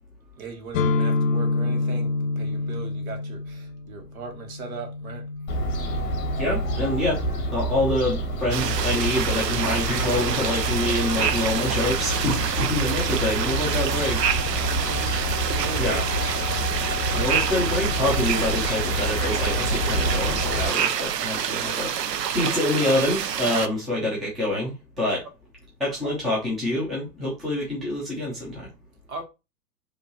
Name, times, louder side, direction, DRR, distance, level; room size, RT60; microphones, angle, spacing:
voice 1, 0.4-5.3 14.6-15.1 15.5-16.0 17.0-17.5 29.1-29.2, right 5 dB, 55° right, 1.5 m, -39 dB
sound 1, 0.7-8.5, left 3 dB, 50° left, 0.7 m, -29 dB
Fowl, 5.5-20.7, equal, 20° left, 1.2 m, -28 dB
voice 2, 6.4-7.2 7.5-14.2 14.8-15.5 15.8-16.0 16.7-25.2 25.8-28.7, left 1 dB, ahead, 0.5 m, -26 dB
sound 2, 8.5-23.7, right 8 dB, 70° right, 0.7 m, -27 dB
5.1 x 2.8 x 3.0 m
figure-of-eight pair, 120°, 50 cm